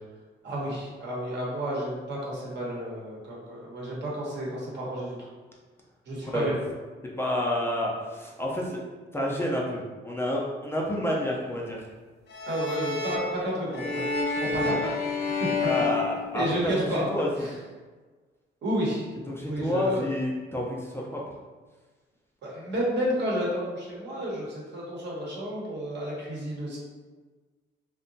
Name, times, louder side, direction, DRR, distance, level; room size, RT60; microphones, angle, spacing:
voice 1, 0.4-5.3 6.1-6.5 12.5-14.9 15.4-15.7 16.3-17.0 17.4-17.6 18.6-19.1 19.5-20.1 22.4-26.8, equal, 60° right, -4 dB, 0.9 m, -31 dB
voice 2, 7.2-8.8 9.1-11.9 14.4-14.7 15.6-16.4 17.1-17.3 19.3-21.2, left 1 dB, 10° left, -4 dB, 0.4 m, -29 dB
sound 1, 12.3-16.9, left 4 dB, 60° left, 0.6 m, -30 dB
2.6 x 2.1 x 2.6 m, 1.3 s
cardioid pair, 90°, 20 cm